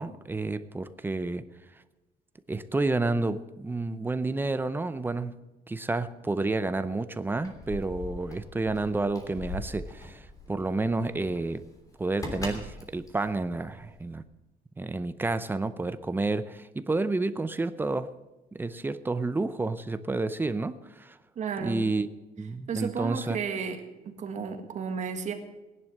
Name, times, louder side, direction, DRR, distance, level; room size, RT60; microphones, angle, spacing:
voice 1, 0.0-1.4 2.5-5.3 5.7-11.6 12.0-14.2 14.8-18.1 18.5-21.2 21.6-22.1 22.4-23.4, right 3 dB, 10° right, 12 dB, 0.6 m, -30 dB
Keys jangling, 7.3-14.2, left 1 dB, 20° left, 3.1 m, -41 dB
voice 2, 21.4-21.9 22.7-25.3, right 6 dB, 45° right, 5 dB, 1.9 m, -33 dB
19.5 x 11.0 x 6.6 m, 1.1 s
cardioid pair, 165°, 16 cm